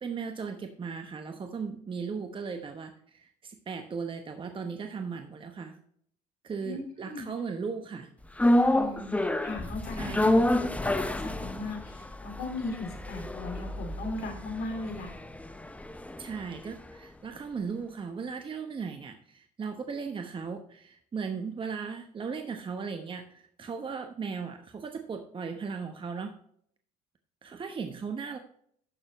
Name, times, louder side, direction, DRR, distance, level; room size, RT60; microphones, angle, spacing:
voice 1, 0.0-5.8 6.4-8.1 9.9-10.4 16.2-26.3 27.4-28.4, right 5 dB, 30° right, 6 dB, 1.0 m, -37 dB
sound 1, 8.4-16.7 17.0-17.1, left 1 dB, 10° left, 0.9 m, -28 dB
voice 2, 8.7-15.1, left 2 dB, 60° left, 4 dB, 2.9 m, -38 dB
12.0 x 6.5 x 3.0 m, 0.66 s
hypercardioid pair, 65°, 18 cm